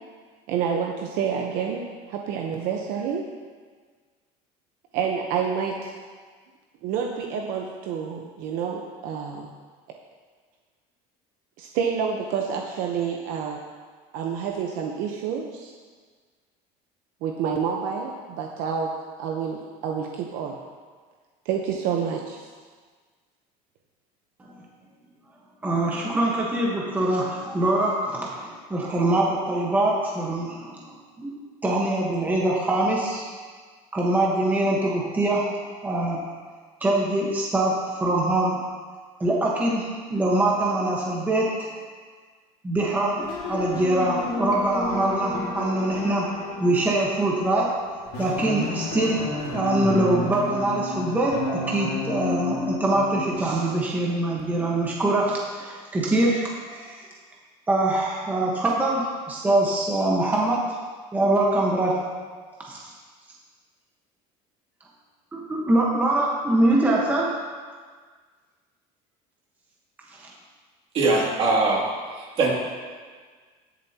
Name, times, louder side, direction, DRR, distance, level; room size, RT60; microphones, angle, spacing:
voice 1, 0.5-3.2 4.9-5.9 6.8-9.5 11.6-13.6 14.1-15.7 17.2-18.9 19.2-20.6 21.4-22.4, right 7 dB, 65° right, 1 dB, 1.0 m, -28 dB
voice 2, 25.6-31.3 31.6-33.3 33.9-36.2 36.8-38.6 39.2-41.8 42.6-49.2 49.5-57.1 57.7-60.8 61.1-62.0 62.7-62.9 65.3-67.4 70.2-70.3, right 1 dB, 10° right, -4 dB, 1.3 m, -24 dB
sound 1, 43.2-53.5, left 2 dB, 60° left, 2.1 m, -31 dB
voice 3, 70.9-72.5, right 3 dB, 40° right, -4 dB, 2.6 m, -22 dB
19.0 x 7.1 x 2.9 m, 1.5 s
cardioid pair, 160°, 15 cm